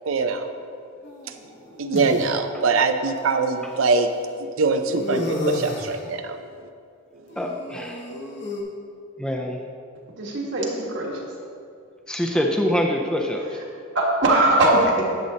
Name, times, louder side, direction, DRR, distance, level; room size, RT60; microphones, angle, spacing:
voice 1, 0.1-0.5 1.8-4.1 4.4-6.4, right 4 dB, 85° right, 7 dB, 0.6 m, -23 dB
sound 1, 1.0-2.2 3.2-3.3 4.9-6.0 7.3-8.6, left 2 dB, 55° left, 1.3 m, -31 dB
voice 2, 7.4-8.0 9.2-9.6 12.1-13.5, equal, 5° left, 1 dB, 0.5 m, -24 dB
voice 3, 10.2-11.2 13.9-15.1, right 2 dB, 60° right, -2 dB, 1.5 m, -20 dB
10.5 x 7.7 x 2.9 m, 2.4 s
head